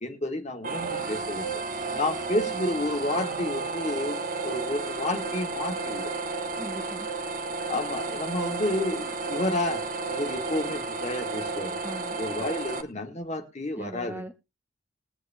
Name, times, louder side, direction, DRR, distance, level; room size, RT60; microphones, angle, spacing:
voice 1, 0.0-1.5 1.9-6.1 7.7-9.8 10.1-11.8 12.2-14.2, left 1 dB, 35° left, 1.6 m, -30 dB
sound 1, 0.6-12.8, right 3 dB, 40° right, 1.2 m, -32 dB
voice 2, 6.6-7.1 11.8-12.2 13.8-14.3, right 1 dB, 10° right, 0.6 m, -39 dB
21.0 x 7.9 x 2.7 m
head